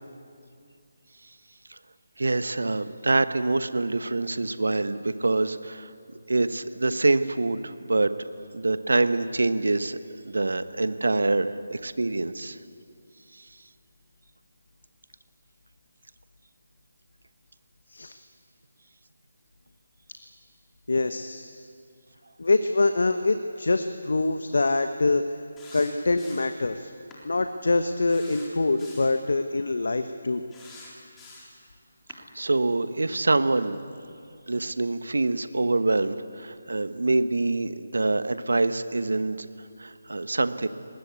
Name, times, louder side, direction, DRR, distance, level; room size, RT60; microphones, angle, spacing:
voice 1, 2.2-5.9 6.3-8.1 8.5-10.0 10.2-12.6 32.3-33.8 34.5-40.7, right 2 dB, 75° right, 12 dB, 1.2 m, -25 dB
voice 2, 20.9-21.7 22.4-25.2 25.7-26.9 27.2-30.4, left 3 dB, 70° left, 9 dB, 1.1 m, -25 dB
sound 1, 25.6-26.6 27.1-27.2 28.1-29.2 30.5-31.6 32.1-32.2, left 3 dB, 10° left, 3.8 m, -47 dB
23.0 x 19.5 x 8.4 m, 2.4 s
figure-of-eight pair, 155°, 0 cm